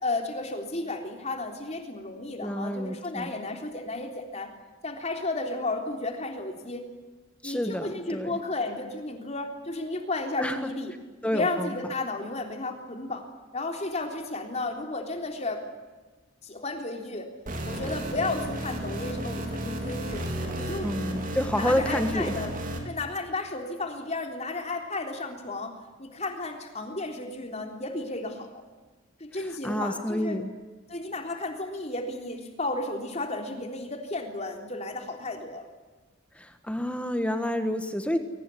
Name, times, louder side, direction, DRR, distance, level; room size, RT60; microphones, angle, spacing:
voice 1, 0.0-4.5 4.8-6.8 7.4-10.9 11.2-13.3 13.5-15.6 16.4-17.3 17.7-20.3 20.6-20.9 21.5-22.6 22.8-28.6 29.2-30.4 30.9-35.7, left 2 dB, 35° left, 4 dB, 3.7 m, -33 dB
voice 2, 2.4-3.3 7.4-8.4 10.4-10.7 11.2-11.7 20.8-22.3 29.6-30.5 36.3-38.2, equal, 5° left, 8 dB, 1.4 m, -29 dB
sound 1, 17.5-22.8, equal, 40° right, 4.2 m, -33 dB
23.0 x 19.0 x 10.0 m, 1.3 s
head